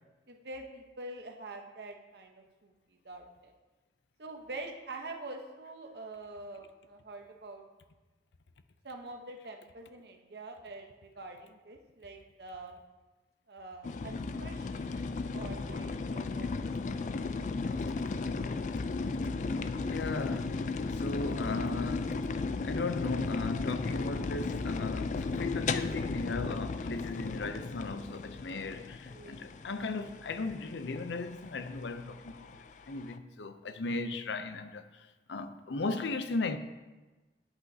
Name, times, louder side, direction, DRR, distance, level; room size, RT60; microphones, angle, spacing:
voice 1, 0.3-3.5 4.2-7.6 8.8-12.8 13.5-16.5 16.9-17.2 28.8-29.4, right 2 dB, 65° right, 0.9 m, -46 dB
sound 1, 13.8-33.2, left 3 dB, 45° left, 0.3 m, -35 dB
voice 2, 19.8-22.3 22.6-32.5 32.9-36.6, left 3 dB, 85° left, 0.6 m, -36 dB
11.0 x 8.1 x 2.8 m
head